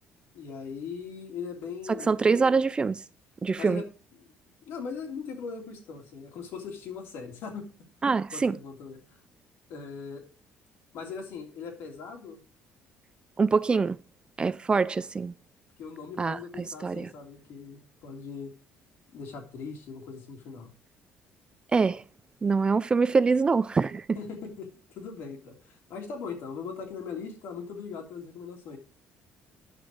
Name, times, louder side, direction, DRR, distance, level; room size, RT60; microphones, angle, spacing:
voice 1, 0.3-2.2 3.6-3.9 4.7-7.7 8.3-9.2 9.7-10.2 10.9-12.4 15.8-18.5 19.1-20.7 24.1-28.8, left 5 dB, 75° left, 3.3 m, -40 dB
voice 2, 1.9-3.0 3.4-3.8 8.0-8.6 13.4-14.0 14.4-15.3 16.2-16.4 16.8-17.1 21.7-22.0 22.4-24.1, right 4 dB, 25° right, 0.4 m, -24 dB
9.7 x 6.2 x 4.8 m
cardioid pair, 110°, 4 cm